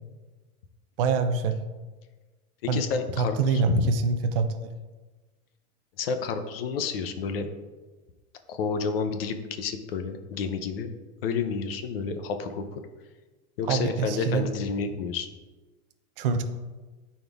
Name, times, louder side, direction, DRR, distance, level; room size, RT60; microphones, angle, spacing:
voice 1, 1.0-1.6 2.7-2.8 3.1-4.6 13.7-14.5 16.2-16.4, right 4 dB, 40° right, 7 dB, 0.6 m, -25 dB
voice 2, 2.6-3.8 6.0-7.5 8.5-10.9 11.2-12.8 13.6-15.3, left 5 dB, 40° left, 8 dB, 0.6 m, -30 dB
12.5 x 4.3 x 3.4 m, 1.3 s
supercardioid pair, 175°, 44 cm